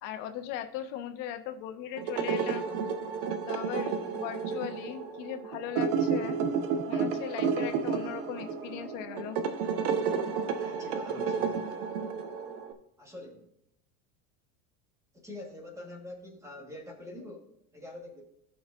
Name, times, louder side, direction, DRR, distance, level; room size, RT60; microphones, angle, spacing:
voice 1, 0.0-2.6 3.5-6.4 6.9-9.4, left 10 dB, 80° left, 6 dB, 1.1 m, -38 dB
sound 1, 2.0-12.7, right 6 dB, 75° right, 1.2 m, -31 dB
voice 2, 10.5-11.6 13.0-13.5 15.1-18.2, left 2 dB, 10° right, 1 dB, 1.5 m, -45 dB
17.0 x 6.1 x 2.5 m, 0.76 s
cardioid pair, 175°, 37 cm